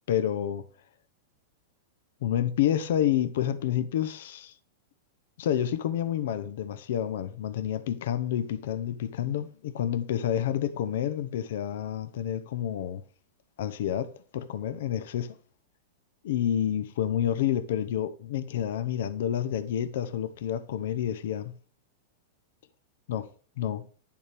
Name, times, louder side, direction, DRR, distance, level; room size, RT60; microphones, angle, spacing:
voice 1, 0.1-0.6 2.2-4.6 5.4-13.0 13.6-15.4 16.2-21.5 23.1-23.3 23.6-23.9, left 10 dB, 70° left, 0.8 m, -29 dB
10.5 x 7.0 x 3.4 m
supercardioid pair, 145°, 0 cm